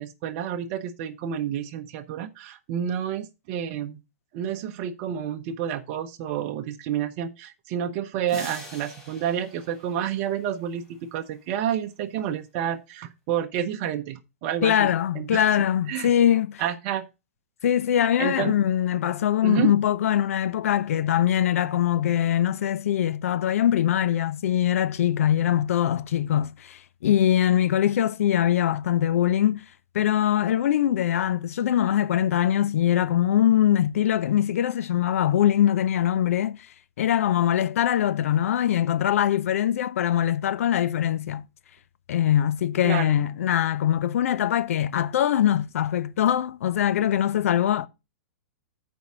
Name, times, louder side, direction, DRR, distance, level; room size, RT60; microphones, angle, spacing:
voice 1, 0.0-4.0 4.3-14.9 15.1-16.1 16.6-17.1 18.2-18.5 19.4-19.7 42.8-43.2, right 9 dB, 45° right, 0.9 m, -29 dB
sound 1, 8.3-10.8, equal, 5° left, 3.8 m, -43 dB
voice 2, 14.6-16.6 17.6-29.6 29.9-36.7 37.0-41.5 42.1-47.9, left 10 dB, 70° left, 0.7 m, -22 dB
8.1 x 4.7 x 6.2 m
hypercardioid pair, 130°, 8 cm